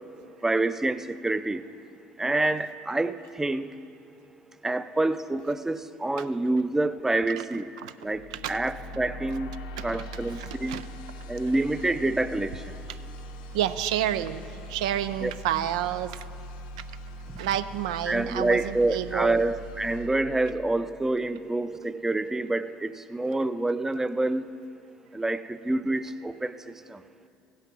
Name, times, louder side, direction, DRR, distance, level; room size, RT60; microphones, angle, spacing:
voice 1, 0.4-1.6 2.2-3.7 4.6-7.7 8.0-8.2 8.5-9.5 9.8-10.9 11.3-12.5 15.2-15.3 18.1-24.6 25.1-26.5, right 2 dB, 10° right, 12 dB, 0.5 m, -27 dB
sound 1, 8.1-21.2, equal, 85° left, 0.6 m, -42 dB
voice 2, 9.8-10.9 12.9-13.0 13.5-14.4 14.7-16.2 17.4-19.5, right 12 dB, 80° right, 12 dB, 0.4 m, -30 dB
16.0 x 5.7 x 6.0 m, 2.4 s
hypercardioid pair, 65°, 4 cm